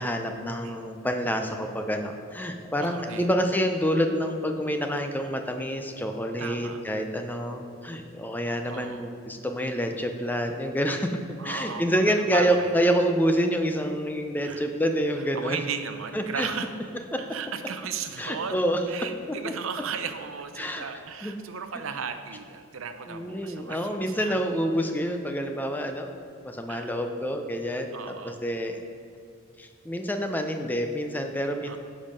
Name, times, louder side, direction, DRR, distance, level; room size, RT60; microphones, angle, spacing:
voice 1, 0.0-11.1 11.4-15.6 16.1-16.5 17.1-17.2 18.2-18.8 19.4-19.5 20.6-20.8 21.2-21.4 23.1-26.2 26.4-28.8 29.6-31.8, equal, 10° left, 5 dB, 0.5 m, -27 dB
voice 2, 2.8-3.3 6.4-6.8 8.7-9.1 11.4-12.7 14.4-14.7 15.2-16.7 17.2-24.4 26.7-27.1 27.9-28.4 31.7-31.8, right 6 dB, 65° right, 8 dB, 0.6 m, -36 dB
10.0 x 5.3 x 5.4 m, 2.3 s
head